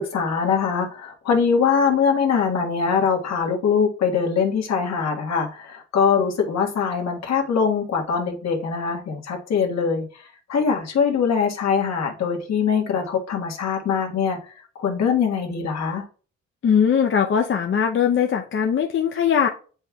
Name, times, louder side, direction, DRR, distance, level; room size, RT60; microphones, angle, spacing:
voice 1, 0.0-10.0 10.5-14.4 14.8-16.0, left 6 dB, 60° left, 0 dB, 1.6 m, -22 dB
voice 2, 16.6-19.5, left 7 dB, 40° left, 2 dB, 0.7 m, -20 dB
7.8 x 5.4 x 2.3 m, 0.39 s
cardioid pair, 90°, 30 cm